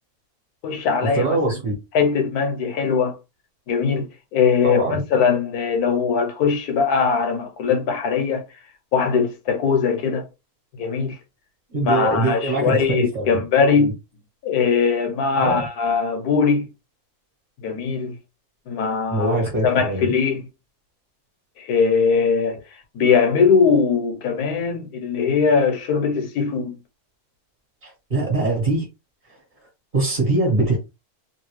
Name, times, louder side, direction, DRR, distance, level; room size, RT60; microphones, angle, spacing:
voice 1, 0.6-1.6 1.9-3.2 3.7-8.4 8.9-10.2 10.8-11.2 11.8-13.9 14.4-16.7 17.6-18.1 18.7-20.4 21.6-22.6 22.9-26.7, left 5 dB, 80° left, 1.3 m, -20 dB
voice 2, 1.1-1.7 4.6-5.0 11.7-13.4 13.8-13.9 15.4-15.6 19.1-20.1 28.1-28.8 29.9-30.8, right 2 dB, 35° right, 1.4 m, -22 dB
3.2 x 2.7 x 3.1 m
omnidirectional pair, 1.6 m